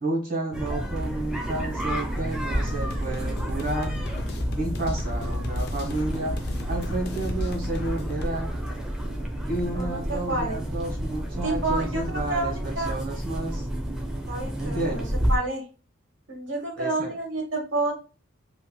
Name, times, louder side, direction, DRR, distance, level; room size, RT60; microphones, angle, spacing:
voice 1, 0.0-3.9 4.6-6.4 6.7-8.5 9.5-13.7 14.6-15.1 16.8-17.1, right 2 dB, 45° right, -1 dB, 1.2 m, -31 dB
sound 1, 0.5-15.4, equal, 5° right, 0.5 m, -30 dB
sound 2, 2.7-8.2, left 1 dB, 50° left, 0.4 m, -33 dB
voice 2, 9.7-10.5 11.4-13.0 14.3-15.6 16.3-17.9, right 2 dB, 70° right, 1 dB, 1.2 m, -29 dB
3.0 x 2.8 x 2.2 m, 0.35 s
head